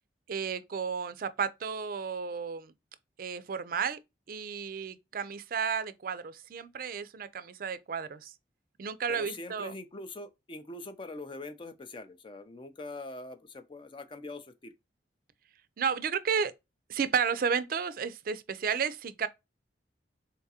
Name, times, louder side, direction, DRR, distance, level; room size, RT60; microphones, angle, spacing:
voice 1, 0.3-2.7 3.2-4.0 4.3-8.3 8.8-9.7 15.8-16.5 16.9-19.3, right 6 dB, 50° right, 0.4 m, -32 dB
voice 2, 9.1-14.7, left 2 dB, 30° left, 0.4 m, -43 dB
3.8 x 3.5 x 2.7 m
head